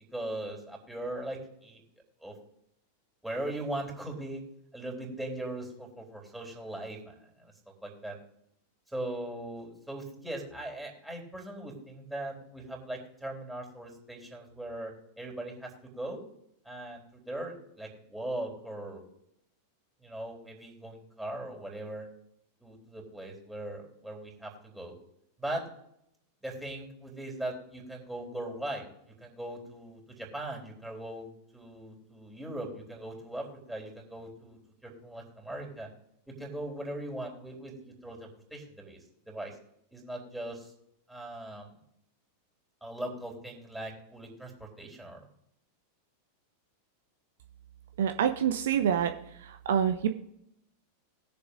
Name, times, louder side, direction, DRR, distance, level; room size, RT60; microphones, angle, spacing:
voice 1, 0.1-1.8 2.2-2.3 3.2-4.4 4.7-7.5 7.8-8.2 8.9-16.2 16.7-19.0 20.0-22.1 22.6-24.9 25.4-25.6 26.4-28.9 29.2-35.9 36.4-39.0 39.3-39.5 39.9-40.7 41.1-41.8 42.8-45.2, right 1 dB, 5° right, -1 dB, 3.5 m, -39 dB
voice 2, 48.0-49.1 49.5-50.1, right 8 dB, 60° right, 7 dB, 0.6 m, -26 dB
20.5 x 6.9 x 2.6 m, 0.76 s
figure-of-eight pair, 90°, 0 cm